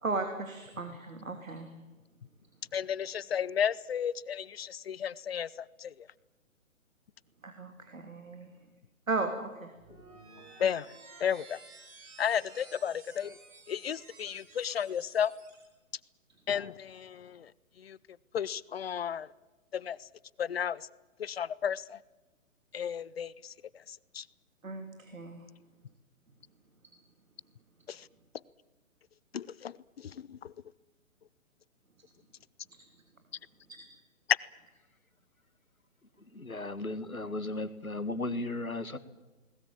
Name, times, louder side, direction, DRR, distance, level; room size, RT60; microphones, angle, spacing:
voice 1, 0.0-1.7 7.4-8.5 9.1-9.7 24.6-25.4 33.7-33.8, right 3 dB, 70° right, 5 dB, 3.2 m, -36 dB
voice 2, 2.7-6.1 10.6-10.9 11.2-11.6 12.2-13.4 13.7-15.3 16.5-17.5 17.8-18.0 18.3-19.3 19.7-20.1 20.4-20.9 21.2-22.0 22.7-23.5 23.9-24.2 27.9-28.1 29.3-30.5, left 8 dB, 45° left, 23 dB, 0.7 m, -33 dB
sound 1, 9.8-15.7, right 3 dB, 20° right, 6.3 m, -54 dB
voice 3, 36.3-39.0, left 2 dB, 85° left, 13 dB, 1.9 m, -35 dB
21.0 x 20.0 x 8.8 m, 1.1 s
figure-of-eight pair, 130°, 41 cm